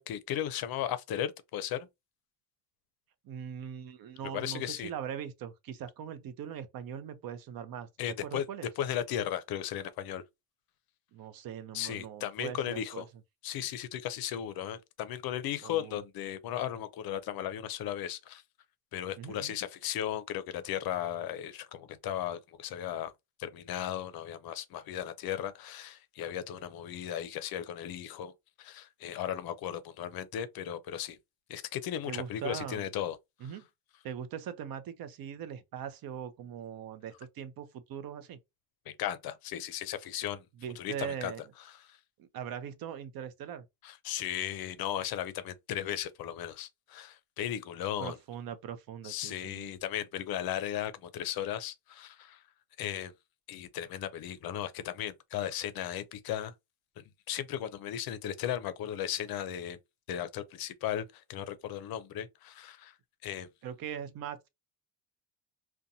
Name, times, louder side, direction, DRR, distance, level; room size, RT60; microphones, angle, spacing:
voice 1, 0.0-1.9 4.2-4.9 8.0-8.5 8.8-10.2 11.7-13.1 13.4-18.4 18.9-23.1 23.4-28.3 28.6-31.2 31.5-33.2 33.4-33.5 38.9-40.4 40.8-41.3 41.7-42.0 43.8-48.2 49.0-52.4 52.8-53.1 53.5-56.5 57.0-59.8 60.1-62.9 63.2-63.5, left 11 dB, 55° left, 0.5 m, -36 dB
voice 2, 3.2-7.9 8.2-8.7 11.1-13.0 15.6-16.0 19.2-19.6 32.1-32.9 33.4-33.6 34.0-38.4 40.6-41.4 42.2-43.7 48.0-49.7 63.6-64.5, right 8 dB, 50° right, 0.6 m, -41 dB
2.5 x 2.2 x 2.7 m
cardioid pair, 100°, 45 cm